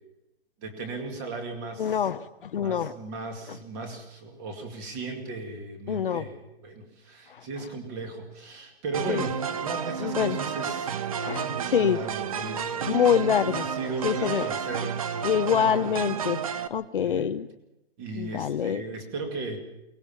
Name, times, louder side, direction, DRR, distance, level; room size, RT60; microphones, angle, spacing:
voice 1, 0.6-2.0 2.6-11.0 11.3-13.0 13.5-15.7 16.0-16.2 16.9-17.3 18.0-19.6, right 3 dB, 20° right, 5 dB, 2.3 m, -37 dB
voice 2, 1.8-2.9 3.5-3.6 5.9-6.2 7.3-7.4 9.1-9.2 10.0-10.4 11.2-12.0 12.9-13.6 14.0-14.5 15.2-16.4 16.7-17.5 18.2-18.8, left 8 dB, 55° left, 12 dB, 0.8 m, -25 dB
sound 1, 8.9-16.7, right 7 dB, 35° right, 0.8 m, -31 dB
23.0 x 19.0 x 7.2 m, 0.92 s
hypercardioid pair, 175°, 32 cm